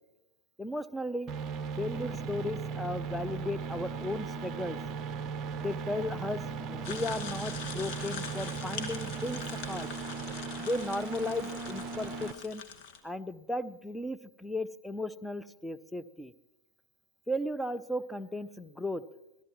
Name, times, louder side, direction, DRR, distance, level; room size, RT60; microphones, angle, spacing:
voice 1, 0.6-1.3 1.8-4.8 5.5-6.4 6.7-9.9 10.6-12.6 13.0-16.3 17.3-19.0, left 1 dB, 5° left, 11 dB, 0.6 m, -35 dB
sound 1, 1.3-12.3, right 5 dB, 25° right, 0.8 m, -37 dB
sound 2, 6.8-13.0, left 6 dB, 40° left, 1.7 m, -43 dB
26.0 x 18.0 x 3.0 m, 1.0 s
figure-of-eight pair, 90°, 0 cm